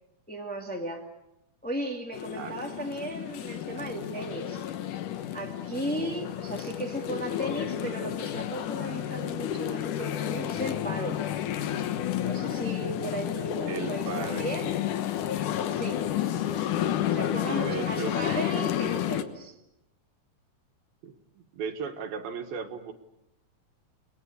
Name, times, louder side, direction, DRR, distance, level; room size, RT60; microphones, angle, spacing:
voice 1, 0.3-1.1 1.6-4.6 5.3-11.2 12.2-14.7 15.7-16.0 17.1-19.5, right 1 dB, 5° left, 1 dB, 0.8 m, -36 dB
sound 1, 2.1-19.2, left 11 dB, 65° left, 2.3 m, -31 dB
voice 2, 2.4-2.8 13.7-14.5 17.5-18.2 21.0-22.9, right 6 dB, 70° right, 7 dB, 3.3 m, -36 dB
30.0 x 21.0 x 8.4 m, 0.84 s
omnidirectional pair, 4.6 m